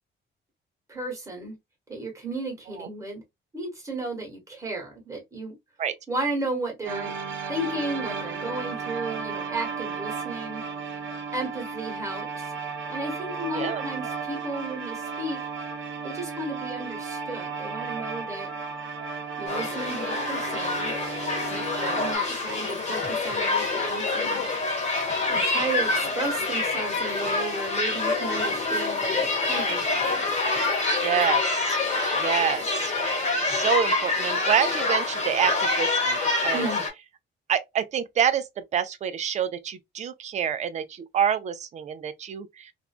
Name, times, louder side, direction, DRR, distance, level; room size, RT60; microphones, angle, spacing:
voice 1, 0.9-1.6 1.9-3.2 3.5-5.5 6.1-7.1 7.5-10.6 11.3-12.5 12.9-15.4 16.0-18.5 19.4-20.9 22.0-24.4 25.3-30.2 36.5-36.8, right 2 dB, 15° right, 1.2 m, -34 dB
sound 1, 6.8-22.2, right 5 dB, 85° right, 0.7 m, -34 dB
sound 2, 19.5-36.9, left 3 dB, 35° left, 1.0 m, -26 dB
voice 2, 31.0-31.8 32.1-32.9 33.4-36.7 37.5-42.7, right 8 dB, 35° right, 0.4 m, -27 dB
2.5 x 2.2 x 2.4 m
cardioid pair, 165°, 20 cm